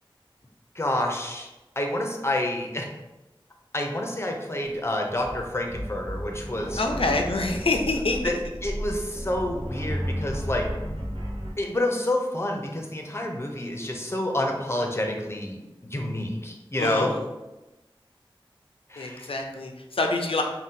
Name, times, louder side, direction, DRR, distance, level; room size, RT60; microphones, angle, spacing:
voice 1, 0.8-1.5 1.8-2.9 3.7-6.8 8.2-8.3 8.6-10.7 11.6-15.6 15.9-17.1 18.9-19.3, left 1 dB, 30° left, 1 dB, 0.5 m, -28 dB
sound 1, 5.2-11.5, equal, 65° right, 0.8 m, -33 dB
voice 2, 6.8-8.3 16.8-17.2 19.0-20.4, left 2 dB, 80° left, 3 dB, 0.4 m, -26 dB
2.6 x 2.1 x 3.6 m, 1.0 s
wide cardioid pair, 45°, 9 cm